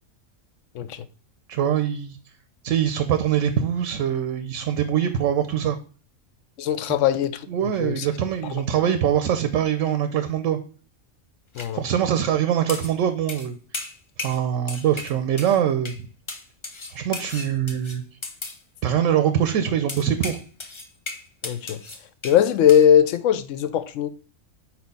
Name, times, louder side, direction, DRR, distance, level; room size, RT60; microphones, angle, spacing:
voice 1, 1.5-2.2 2.6-5.8 7.5-10.6 11.7-13.5 14.2-15.9 16.9-18.0 18.8-20.4, right 9 dB, 70° right, 0.9 m, -23 dB
voice 2, 6.6-7.4 7.8-8.0 11.6-11.8 21.4-21.8 22.2-24.1, left 9 dB, 70° left, 0.9 m, -19 dB
sound 1, 11.5-11.7 12.7-13.0 13.3-13.5 13.7-14.4 14.7-15.6 15.9-16.0 16.3-18.6 19.9-22.4 22.7-22.9, left 3 dB, 30° left, 0.5 m, -35 dB
4.6 x 4.3 x 5.3 m
omnidirectional pair, 1.4 m